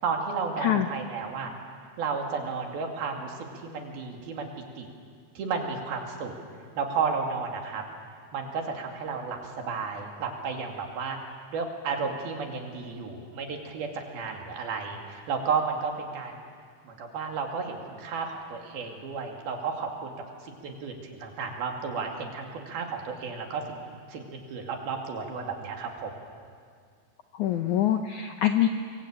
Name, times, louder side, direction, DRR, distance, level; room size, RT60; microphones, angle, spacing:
voice 1, 0.0-1.5 2.0-4.9 5.4-6.3 6.8-7.8 8.3-11.2 11.5-16.4 16.8-20.1 20.4-23.8 24.1-26.1, right 5 dB, 70° right, 2 dB, 4.3 m, -33 dB
voice 2, 27.3-28.7, left 11 dB, 75° left, 6 dB, 1.8 m, -24 dB
24.0 x 23.0 x 8.9 m, 2.1 s
omnidirectional pair, 4.7 m